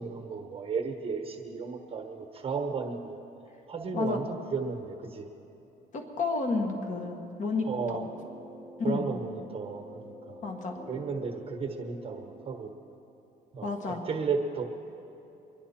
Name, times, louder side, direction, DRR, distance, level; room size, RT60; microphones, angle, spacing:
voice 1, 0.0-3.2 3.7-5.3 7.6-8.0 8.8-10.4 10.9-12.7 13.5-14.6, right 5 dB, 35° right, 3 dB, 1.3 m, -34 dB
voice 2, 5.9-8.0 8.8-9.1 10.4-10.8 13.6-14.1, left 3 dB, 45° left, 3 dB, 1.7 m, -31 dB
sound 1, 7.7-12.6, equal, 10° left, 2.0 m, -48 dB
24.0 x 10.5 x 4.3 m, 2.9 s
cardioid pair, 110°, 17 cm